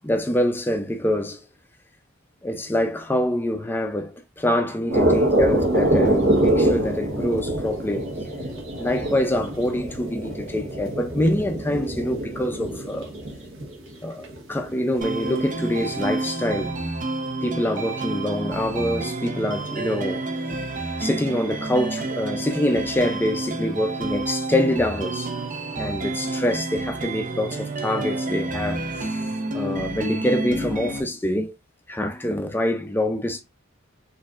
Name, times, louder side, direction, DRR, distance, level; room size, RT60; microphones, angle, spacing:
voice 1, 0.0-1.4 2.4-8.1 8.8-13.1 14.0-16.8 17.4-20.3 21.0-25.3 25.8-28.8 29.5-31.5 31.9-33.4, left 1 dB, 10° left, 0.4 m, -25 dB
sound 1, 4.9-13.9 14.2-14.9 15.2-15.7 16.0-16.1, right 1 dB, 65° right, 1.3 m, -24 dB
sound 2, 15.0-31.0, right 2 dB, 40° right, 0.5 m, -29 dB
4.2 x 2.6 x 2.4 m
head